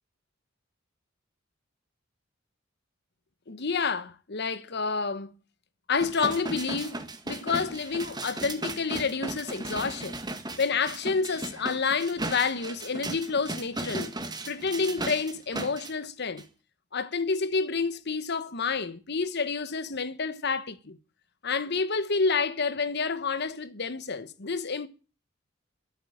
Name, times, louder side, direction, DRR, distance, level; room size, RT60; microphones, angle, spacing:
voice 1, 3.5-5.3 5.9-7.0 7.3-10.2 10.6-14.1 14.5-16.5 16.9-21.0 21.4-24.9, left 4 dB, 60° left, 1.1 m, -29 dB
sound 1, 6.0-15.9 16.4-16.5, right 2 dB, 20° right, 1.8 m, -36 dB
13.5 x 8.1 x 9.9 m
head